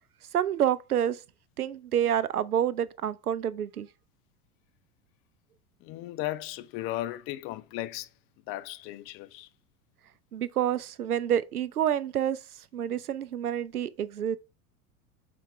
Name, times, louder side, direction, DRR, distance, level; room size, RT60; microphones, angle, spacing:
voice 1, 0.3-1.2 1.6-3.9 10.3-12.4 12.7-14.4, right 10 dB, 80° right, 0.6 m, -28 dB
voice 2, 5.8-8.1 8.5-9.5, left 15 dB, 30° left, 0.5 m, -36 dB
5.7 x 4.3 x 4.5 m
figure-of-eight pair, 80°, 44 cm